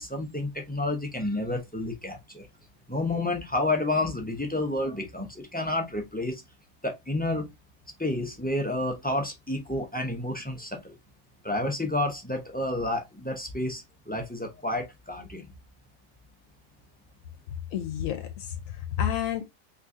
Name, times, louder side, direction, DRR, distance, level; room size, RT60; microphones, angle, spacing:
voice 1, 0.0-2.5 2.9-6.4 6.8-7.5 8.0-10.9 11.4-15.4, left 2 dB, 10° left, 0.4 m, -30 dB
voice 2, 17.7-19.4, left 10 dB, 80° left, 1.0 m, -30 dB
3.6 x 3.0 x 2.6 m
omnidirectional pair, 1.4 m